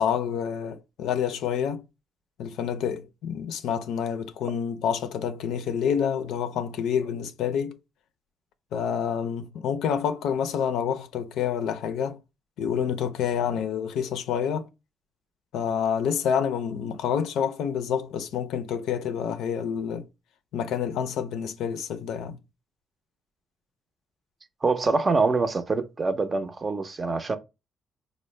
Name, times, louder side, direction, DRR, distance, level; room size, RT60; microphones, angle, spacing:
voice 1, 0.0-1.8 2.4-7.8 8.7-12.2 12.6-14.7 15.5-20.1 20.5-22.4, left 8 dB, 85° left, 0.4 m, -28 dB
voice 2, 24.6-27.4, right 3 dB, 35° right, 0.5 m, -25 dB
4.0 x 2.0 x 3.1 m
cardioid pair, 90°, 0 cm